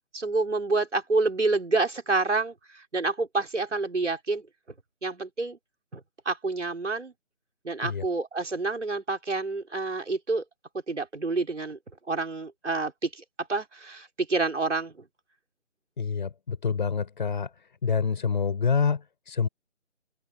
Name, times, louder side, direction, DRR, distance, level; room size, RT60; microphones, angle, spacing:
voice 1, 0.1-4.4 5.0-5.6 5.9-6.0 6.3-7.1 7.6-10.4 10.9-11.8 12.1-14.9, right 3 dB, 70° right, 5.6 m, -28 dB
voice 2, 16.0-19.5, left 6 dB, 40° left, 5.6 m, -27 dB
open air
figure-of-eight pair, 155°, 37 cm